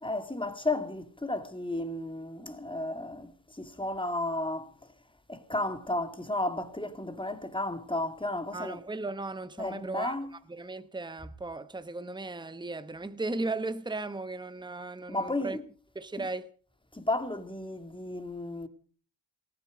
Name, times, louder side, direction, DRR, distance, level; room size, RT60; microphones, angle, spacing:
voice 1, 0.0-4.7 5.3-8.8 9.6-10.3 15.1-15.6 16.2-16.3 16.9-18.7, left 2 dB, 10° left, 2.2 m, -33 dB
voice 2, 8.5-10.1 10.5-15.6 15.9-16.5, right 2 dB, 10° right, 1.1 m, -36 dB
18.5 x 14.5 x 5.1 m
cardioid pair, 60°, 48 cm